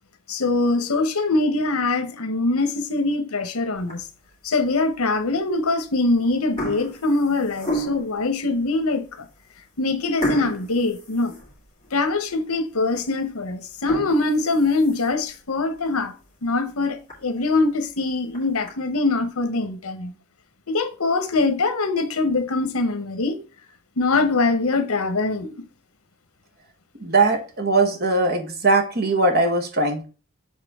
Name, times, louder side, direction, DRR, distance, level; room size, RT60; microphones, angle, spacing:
voice 1, 0.3-4.1 4.4-9.3 9.8-11.3 11.9-16.1 16.4-20.1 20.7-23.4 24.0-25.7, left 3 dB, 90° left, 1.0 m, -23 dB
sound 1, 3.8-4.3 4.9-5.0 5.8-6.1 6.3-8.2 8.8-8.9 9.3-9.4 10.2-12.0 12.4-12.5 13.0-13.1 13.7-15.3 15.8-15.9 16.3-16.4 16.7-16.8 17.1-17.2 18.1-18.7, right 2 dB, 25° left, 2.4 m, -31 dB
voice 2, 27.0-30.1, right 3 dB, 45° right, 1.3 m, -20 dB
7.4 x 4.0 x 3.6 m
head